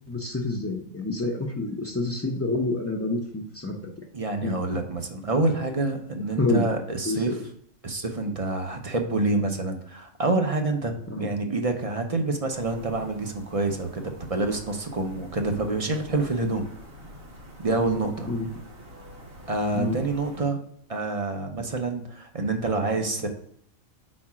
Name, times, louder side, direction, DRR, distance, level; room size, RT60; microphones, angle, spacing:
voice 1, 0.1-3.8 4.4-4.6 6.4-6.7 7.0-7.4 11.1-11.3 18.3-18.5 19.7-20.0, left 2 dB, 20° left, -2 dB, 0.4 m, -28 dB
voice 2, 4.1-7.3 7.8-16.7 17.6-18.3 19.5-20.6 20.9-23.3, right 2 dB, 35° right, 5 dB, 0.6 m, -27 dB
sound 1, 12.5-20.4, equal, 80° right, 2.4 m, -46 dB
4.7 x 4.3 x 5.8 m, 0.67 s
omnidirectional pair, 1.4 m